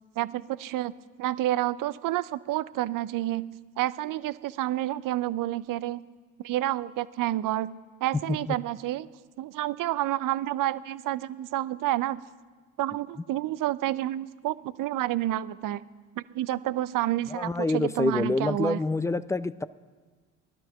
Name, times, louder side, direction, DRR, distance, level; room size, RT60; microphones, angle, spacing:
voice 1, 0.2-0.9 1.2-6.0 6.4-7.7 8.0-9.1 9.4-12.2 12.8-15.8 16.2-18.8, right 14 dB, 60° right, 17 dB, 0.7 m, -29 dB
voice 2, 17.3-19.6, left 2 dB, 10° left, 15 dB, 0.6 m, -27 dB
18.5 x 12.0 x 5.8 m, 1.4 s
hypercardioid pair, 60°, 37 cm